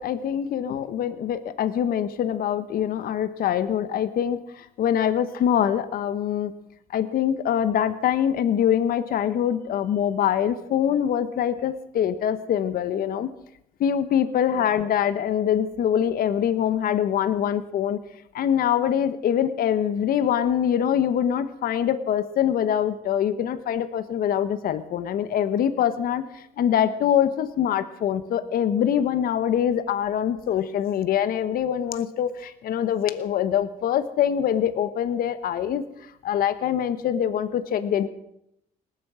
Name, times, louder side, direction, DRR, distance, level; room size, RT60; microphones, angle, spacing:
voice 1, 0.0-6.5 6.9-13.3 13.8-18.0 18.3-35.8 36.2-38.1, left 9 dB, 60° left, 12 dB, 1.1 m, -24 dB
19.0 x 8.6 x 7.4 m, 0.79 s
cardioid pair, 110°, 17 cm